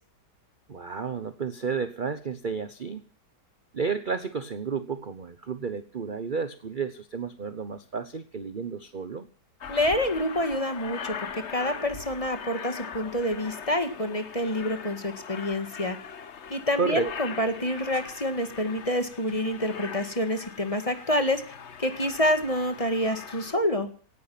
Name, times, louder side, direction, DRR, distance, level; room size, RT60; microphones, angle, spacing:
voice 1, 0.7-3.0 3.7-9.3 16.8-17.1, right 5 dB, 35° right, 11 dB, 0.9 m, -32 dB
Aircraft, 9.6-23.5, left 6 dB, 45° left, 1.2 m, -41 dB
voice 2, 9.7-16.0 16.5-21.4 21.8-23.9, left 1 dB, 20° left, 8 dB, 1.9 m, -27 dB
17.5 x 11.0 x 5.9 m, 0.42 s
omnidirectional pair, 1.8 m